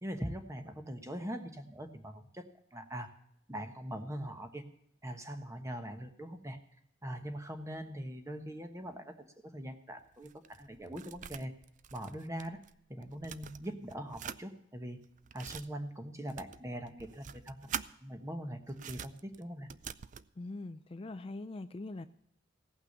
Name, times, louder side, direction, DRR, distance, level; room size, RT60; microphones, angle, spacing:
voice 1, 0.0-2.4 2.7-3.1 3.5-4.6 5.0-6.6 7.0-11.5 11.9-12.6 12.9-15.0 15.3-17.6 18.0-19.7, equal, 15° right, 6 dB, 1.2 m, -42 dB
sound 1, 10.0-12.7 13.0-14.4 15.0-15.7 16.3-17.9 18.7-20.3, right 8 dB, 45° right, 0.4 m, -45 dB
voice 2, 20.4-22.1, left 2 dB, 30° left, 10 dB, 0.4 m, -42 dB
16.5 x 5.9 x 8.0 m, 0.72 s
head